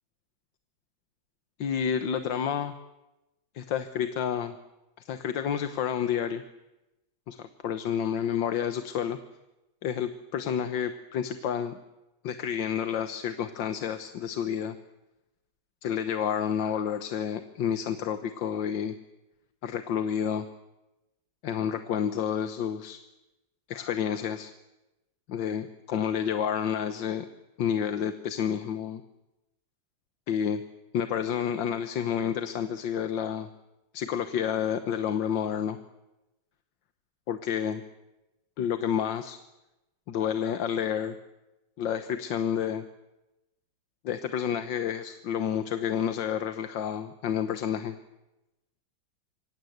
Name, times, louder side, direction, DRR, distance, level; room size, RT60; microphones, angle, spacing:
voice 1, 1.6-2.7 3.5-4.6 5.1-6.4 7.3-9.2 9.8-11.8 12.2-14.8 15.8-19.0 19.6-20.5 21.4-23.0 23.7-24.5 25.3-27.3 27.6-29.0 30.3-30.6 30.9-33.5 33.9-35.8 37.3-37.8 38.6-39.4 40.1-41.2 41.8-42.9 44.0-48.0, left 8 dB, 80° left, 10 dB, 1.8 m, -29 dB
26.5 x 24.5 x 8.0 m, 0.98 s
omnidirectional pair, 2.0 m